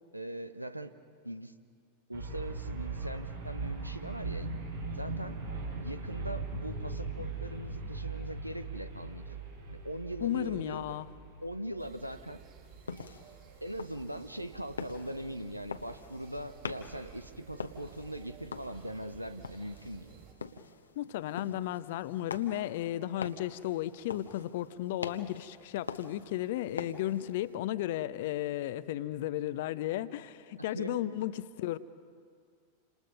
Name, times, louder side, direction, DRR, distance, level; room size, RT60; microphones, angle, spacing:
voice 1, 0.1-0.9 1.2-1.5 2.1-4.5 4.9-5.4 5.7-9.2 9.7-10.9 11.4-12.4 13.6-20.1 30.6-31.0, right 1 dB, 90° right, 10 dB, 1.0 m, -41 dB
sound 1, 2.1-12.1, right 3 dB, 70° right, 5.6 m, -39 dB
voice 2, 10.2-11.1 21.0-31.8, left 13 dB, 50° left, 15 dB, 0.7 m, -34 dB
sound 2, 11.8-20.3, right 9 dB, 40° right, 4.3 m, -54 dB
sound 3, 12.6-27.6, left 5 dB, 75° left, 1.0 m, -45 dB
29.5 x 26.5 x 5.4 m, 2.2 s
figure-of-eight pair, 90°, 0 cm